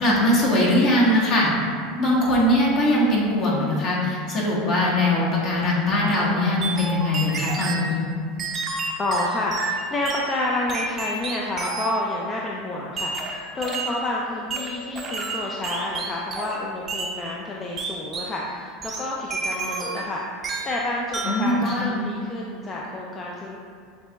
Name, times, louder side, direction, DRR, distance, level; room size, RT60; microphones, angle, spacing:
voice 1, 0.0-1.5 2.0-8.0 21.2-22.0, left 1 dB, 50° left, -6 dB, 1.4 m, -21 dB
sound 1, 6.6-7.9 8.4-10.3 10.7-12.1 13.0-14.0 14.5-16.6 16.9-17.2 17.8-18.4 18.8-20.1 20.4-20.8 21.1-21.5, right 3 dB, 30° right, 0.5 m, -30 dB
voice 2, 9.0-20.2 20.6-23.6, left 2 dB, 25° left, -3 dB, 0.4 m, -29 dB
6.6 x 2.9 x 2.3 m, 2.2 s
supercardioid pair, 120°, 0 cm